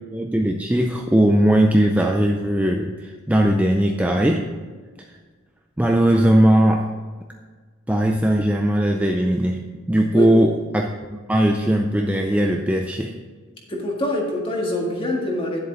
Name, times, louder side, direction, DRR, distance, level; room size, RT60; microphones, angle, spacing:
voice 1, 0.1-4.5 5.8-6.9 7.9-9.6 9.9-13.1, right 1 dB, 5° right, 2 dB, 0.4 m, -19 dB
voice 2, 13.7-15.6, equal, 25° left, -1 dB, 1.9 m, -24 dB
10.5 x 7.5 x 4.0 m, 1.5 s
head